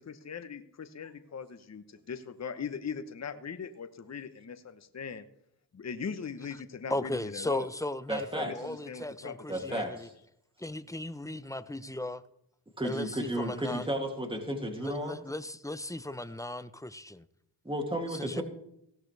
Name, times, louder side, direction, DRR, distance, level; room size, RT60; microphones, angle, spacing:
voice 1, 0.1-5.2 5.7-7.6 8.4-9.3 9.7-9.9, left 6 dB, 40° left, 1.0 m, -40 dB
voice 2, 6.9-10.1 10.6-12.2 12.8-13.9 14.8-17.3 18.1-18.4, left 1 dB, 10° left, 0.8 m, -37 dB
voice 3, 8.1-8.5 9.5-10.1 12.8-15.2 17.6-18.4, right 1 dB, 10° right, 2.8 m, -33 dB
17.0 x 13.0 x 3.4 m
cardioid pair, 50°, 42 cm